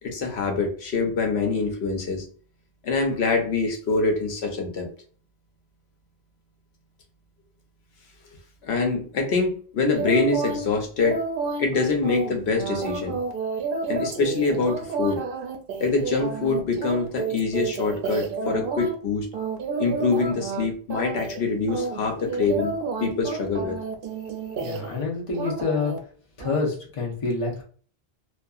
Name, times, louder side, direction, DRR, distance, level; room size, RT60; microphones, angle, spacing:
voice 1, 0.0-2.2 2.8-4.9 8.6-11.2 11.6-13.2 13.9-15.2 15.8-19.3 19.8-23.8, left 4 dB, 90° left, 3 dB, 0.9 m, -25 dB
sound 1, 9.9-10.6 11.0-19.0 19.3-20.6 20.9-21.4 21.7-25.0 25.3-26.0 26.4-26.6, right 4 dB, 65° right, 0.7 m, -30 dB
voice 2, 24.6-25.9 26.4-27.6, left 4 dB, 35° left, -1 dB, 0.7 m, -27 dB
2.6 x 2.4 x 2.3 m, 0.43 s
omnidirectional pair, 1.1 m